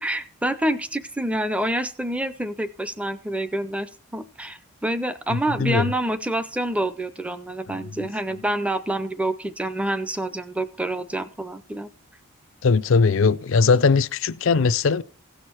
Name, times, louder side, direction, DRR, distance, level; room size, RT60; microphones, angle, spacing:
voice 1, 0.0-11.9, right 1 dB, 5° right, 0.5 m, -27 dB
voice 2, 5.3-5.9 7.7-8.1 12.6-15.0, left 4 dB, 60° left, 0.4 m, -20 dB
16.5 x 6.5 x 4.4 m
head